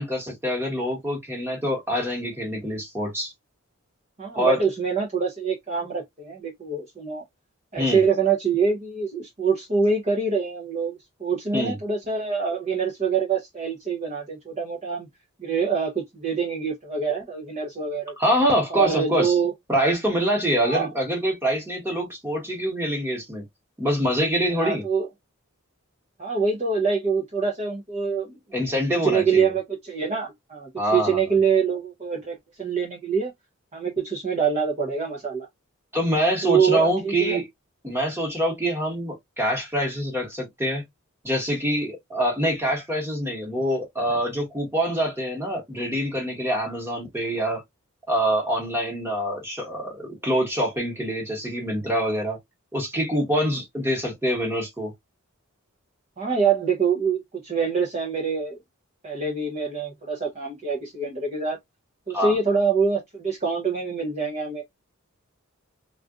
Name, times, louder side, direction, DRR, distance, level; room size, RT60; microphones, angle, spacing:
voice 1, 0.0-3.3 4.3-4.6 7.8-8.0 11.5-11.7 18.2-19.3 19.7-23.4 23.8-24.8 28.5-29.5 30.8-31.2 35.9-37.4 37.8-40.8 41.2-47.6 48.1-52.4 52.7-54.9 62.1-62.3, equal, 10° right, 1.2 m, -25 dB
voice 2, 4.2-7.2 7.7-15.1 15.4-18.1 18.7-19.5 20.6-20.9 24.5-25.1 26.2-28.4 28.9-33.3 33.7-35.5 36.4-37.4 56.2-58.6 59.0-61.6 62.1-64.6, right 5 dB, 30° right, 0.7 m, -25 dB
3.6 x 2.4 x 2.4 m
head